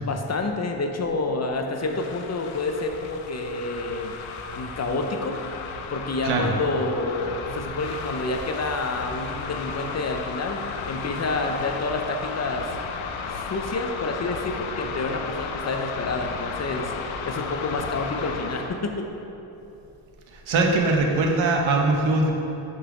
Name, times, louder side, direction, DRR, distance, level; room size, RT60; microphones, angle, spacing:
voice 1, 0.0-4.1 4.6-5.4 5.9-10.6 10.9-12.7 13.3-16.9 17.2-19.0, left 3 dB, 35° left, 4 dB, 0.5 m, -28 dB
sound 1, 1.8-18.8, left 5 dB, 80° left, 0.6 m, -34 dB
voice 2, 6.2-6.5 20.3-22.3, right 2 dB, 80° right, 1 dB, 1.0 m, -21 dB
6.7 x 3.9 x 4.8 m, 3.0 s
cardioid pair, 110°, 47 cm